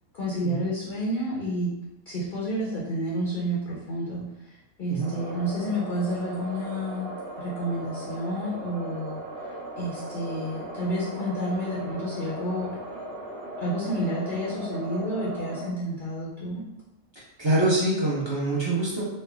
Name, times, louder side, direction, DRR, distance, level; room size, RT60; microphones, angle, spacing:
voice 1, 0.1-1.7 2.1-7.1 7.4-9.2 9.8-12.7 13.6-16.6, equal, 50° left, -6 dB, 0.7 m, -30 dB
sound 1, 5.0-15.7, right 1 dB, 50° right, 1.0 m, -38 dB
voice 2, 17.4-19.0, right 2 dB, 25° right, -7 dB, 0.9 m, -24 dB
3.2 x 2.1 x 3.4 m, 0.92 s
omnidirectional pair, 1.4 m